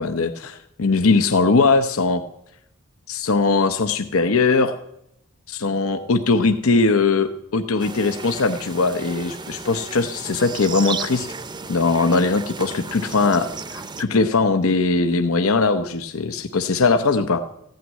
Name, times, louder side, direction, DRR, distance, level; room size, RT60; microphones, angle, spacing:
voice 1, 0.0-2.2 3.1-4.8 5.5-11.3 11.7-17.5, left 3 dB, 80° left, 8 dB, 0.8 m, -20 dB
sound 1, 7.8-14.0, right 4 dB, 20° right, 0.7 m, -34 dB
15.5 x 9.2 x 9.3 m, 0.79 s
head